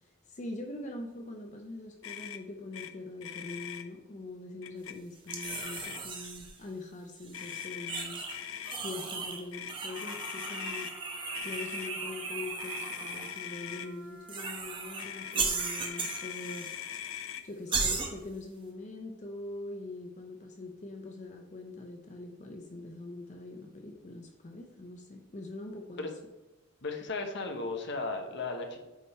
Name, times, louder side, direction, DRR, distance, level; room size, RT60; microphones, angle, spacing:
voice 1, 0.0-8.2 8.8-10.9 11.4-16.7 17.4-26.1, left 2 dB, 35° left, 3 dB, 0.6 m, -43 dB
Motor vehicle (road), 2.0-2.4 2.7-2.9 3.2-3.8 4.6-4.9 5.3-6.2 7.3-8.8 9.5-10.9 11.3-11.9 12.6-13.9 15.0-17.4, left 10 dB, 80° left, 0.5 m, -41 dB
sound 1, 5.3-6.6 7.2-8.4 8.6-9.4 9.7-13.3 14.3-15.0 15.3-16.8 17.0-17.1 17.7-18.1, right 4 dB, 25° right, 0.9 m, -36 dB
Trumpet, 9.8-16.8, right 2 dB, 60° right, 1.5 m, -55 dB
voice 2, 26.8-28.8, left 3 dB, 60° left, 4 dB, 1.0 m, -35 dB
8.4 x 3.6 x 4.3 m, 1.1 s
head